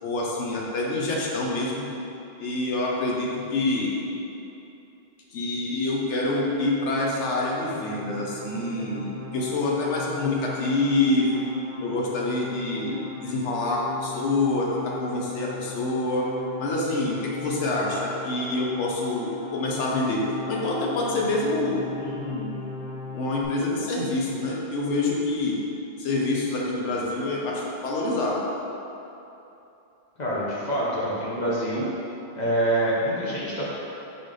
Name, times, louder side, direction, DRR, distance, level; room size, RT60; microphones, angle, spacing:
voice 1, 0.0-1.9 2.4-4.0 5.3-11.5 11.8-16.2 16.6-22.5 23.1-25.6 26.0-28.4, left 2 dB, 90° left, -3 dB, 1.0 m, -26 dB
sound 1, 7.2-23.5, left 3 dB, 40° right, 0.8 m, -39 dB
voice 2, 30.2-31.9 32.4-33.7, right 1 dB, 45° left, -6 dB, 0.8 m, -26 dB
4.1 x 3.2 x 3.7 m, 2.9 s
omnidirectional pair, 1.2 m